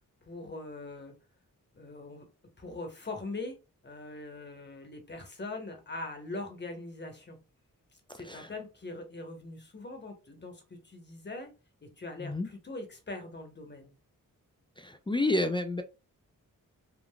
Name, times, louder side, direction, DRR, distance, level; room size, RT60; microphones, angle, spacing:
voice 1, 0.2-1.1 1.7-2.3 2.6-7.4 8.1-11.5 11.8-13.9, left 2 dB, 30° left, 1.0 m, -42 dB
voice 2, 14.8-15.8, left 2 dB, 15° left, 0.3 m, -30 dB
3.7 x 2.3 x 2.2 m
cardioid pair, 65°, 34 cm